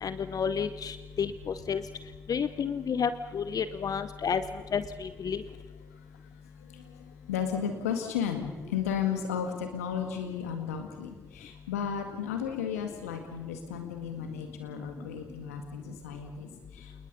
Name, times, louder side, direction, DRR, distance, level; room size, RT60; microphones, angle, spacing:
voice 1, 0.0-1.8 2.3-4.4 4.7-5.4, left 7 dB, 50° left, 13 dB, 0.9 m, -31 dB
voice 2, 6.6-7.0 7.3-17.1, left 7 dB, 85° left, 6 dB, 2.0 m, -34 dB
28.0 x 20.5 x 5.4 m, 1.2 s
hypercardioid pair, 40°, 8 cm